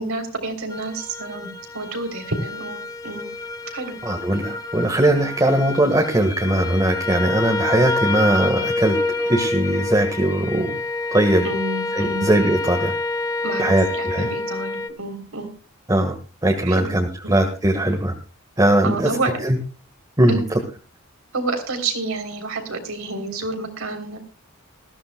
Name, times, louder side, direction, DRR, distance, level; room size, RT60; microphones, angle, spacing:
voice 1, 0.0-3.3 3.7-4.0 11.4-12.3 13.4-15.5 16.6-17.0 18.8-19.4 20.3-20.4 21.3-24.2, right 2 dB, 85° right, 5 dB, 3.4 m, -29 dB
sound 1, 0.7-14.9, left 2 dB, 15° left, 0.9 m, -28 dB
voice 2, 4.0-10.8 11.1-11.5 11.9-12.9 13.6-14.3 15.9-16.2 16.4-18.1 18.6-19.2 19.4-19.6 20.2-20.4, right 1 dB, 20° right, 3 dB, 1.5 m, -20 dB
20.0 x 14.5 x 2.2 m, 0.33 s
head